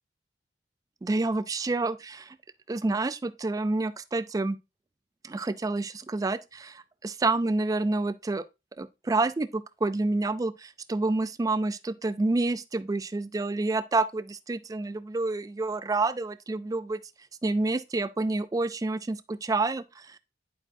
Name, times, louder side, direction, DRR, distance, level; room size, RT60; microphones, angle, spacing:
voice 1, 1.0-2.4 2.7-4.6 5.2-8.4 8.8-17.0 17.4-20.2, right 2 dB, 20° right, 0.3 m, -28 dB
9.8 x 4.6 x 2.6 m
head